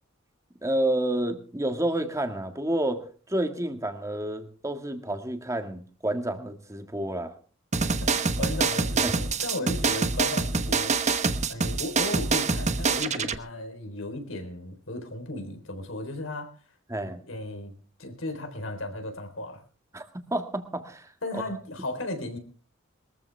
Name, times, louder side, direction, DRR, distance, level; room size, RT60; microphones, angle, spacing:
voice 1, 0.6-7.3 8.4-8.6 9.0-9.1 16.9-17.2 19.9-21.4, right 1 dB, 15° right, 6 dB, 1.8 m, -30 dB
sound 1, 7.7-13.4, right 4 dB, 35° right, 1.0 m, -26 dB
voice 2, 8.0-10.9 11.5-16.5 17.0-17.7 18.0-19.6 21.2-22.4, left 1 dB, 85° left, 6 dB, 3.9 m, -35 dB
22.5 x 14.5 x 3.4 m, 0.39 s
head